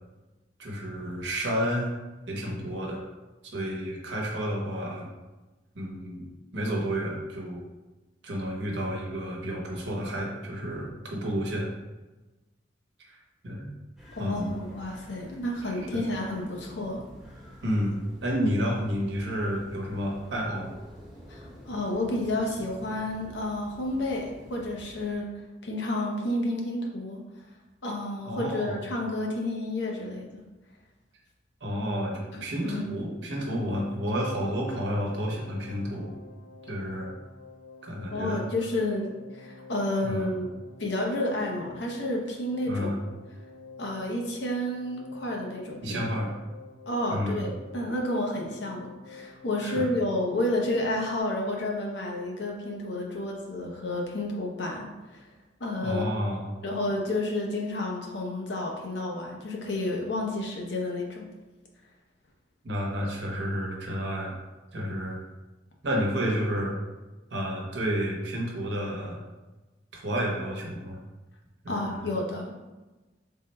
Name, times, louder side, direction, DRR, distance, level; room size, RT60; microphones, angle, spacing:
voice 1, 0.6-1.9 2.3-3.0 3.5-5.1 5.7-6.3 6.5-7.6 8.2-11.7 13.0-13.2 13.4-13.7 14.2-14.5 15.6-16.0 17.6-20.7 28.3-28.8 31.6-32.1 32.4-36.2 36.6-37.1 37.8-38.4 40.0-40.3 42.7-43.1 45.8-46.3 47.1-47.5 49.6-49.9 55.8-56.6 62.6-64.3 64.7-65.2 65.8-66.8 67.3-69.2 69.9-71.0 71.6-72.1, equal, 75° right, -2 dB, 0.9 m, -30 dB
sound 1, 14.0-25.2, equal, ahead, 0.8 m, -48 dB
voice 2, 14.2-17.0 21.3-25.3 25.6-27.2 27.8-30.4 32.3-32.9 38.1-39.1 39.3-40.5 40.8-43.0 43.8-46.0 46.9-55.2 55.6-56.1 56.6-61.3 71.7-72.6, left 1 dB, 75° left, -1 dB, 0.7 m, -30 dB
sound 2, 34.4-51.2, left 3 dB, 40° left, 0.4 m, -49 dB
3.5 x 2.2 x 4.1 m, 1.1 s
head